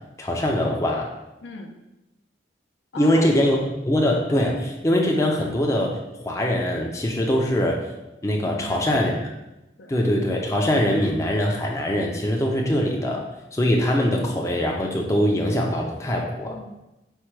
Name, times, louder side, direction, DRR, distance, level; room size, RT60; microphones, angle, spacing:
voice 1, 0.2-1.1 3.0-3.6 3.9-6.0 6.2-7.8 8.2-9.2 9.9-13.2 13.5-16.6, left 1 dB, 15° left, 0 dB, 0.4 m, -22 dB
voice 2, 1.4-1.8 2.9-3.2 8.5-9.1 9.8-9.9 16.5-16.7, left 2 dB, 75° left, 3 dB, 0.5 m, -36 dB
4.4 x 2.2 x 4.5 m, 0.97 s
head